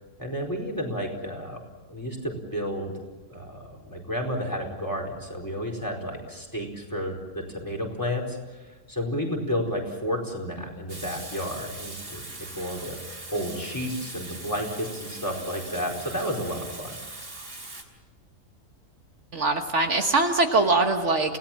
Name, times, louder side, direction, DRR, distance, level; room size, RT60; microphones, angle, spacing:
voice 1, 0.2-1.6 1.9-2.9 3.3-17.0, equal, 15° left, 1 dB, 4.5 m, -31 dB
Water tap faucet / Sink (filling or washing), 10.9-17.8, right 2 dB, 45° right, 3.3 m, -41 dB
voice 2, 19.3-21.4, right 3 dB, 60° right, 4 dB, 1.7 m, -22 dB
29.5 x 18.0 x 7.5 m, 1.2 s
omnidirectional pair, 1.4 m